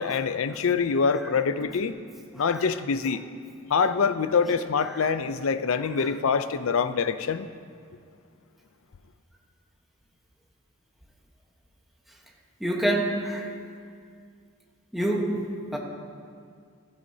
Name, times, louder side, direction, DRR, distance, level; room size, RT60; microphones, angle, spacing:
voice 1, 0.0-2.0 2.4-3.2 3.7-7.5, left 5 dB, 70° left, 12 dB, 0.5 m, -25 dB
voice 2, 12.6-13.5 14.9-15.8, right 1 dB, ahead, -1 dB, 1.1 m, -28 dB
15.0 x 13.5 x 2.8 m, 2.2 s
head